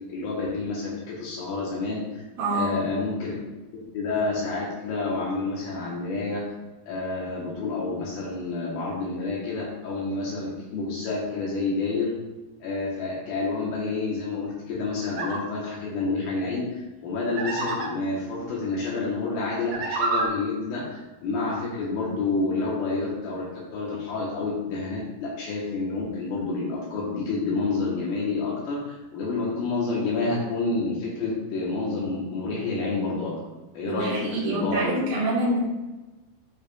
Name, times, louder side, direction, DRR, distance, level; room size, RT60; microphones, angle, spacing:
voice 1, 0.1-2.2 2.5-3.3 3.7-6.4 6.9-12.1 12.6-33.3 33.7-35.0, left 3 dB, 75° left, -5 dB, 3.1 m, -29 dB
voice 2, 2.4-2.8 33.9-35.6, right 1 dB, 85° right, -7 dB, 3.8 m, -26 dB
sound 1, 15.1-15.4 17.4-17.9 19.6-20.3, right 3 dB, 70° right, 1.5 m, -27 dB
12.5 x 5.0 x 2.5 m, 1.1 s
omnidirectional pair, 4.3 m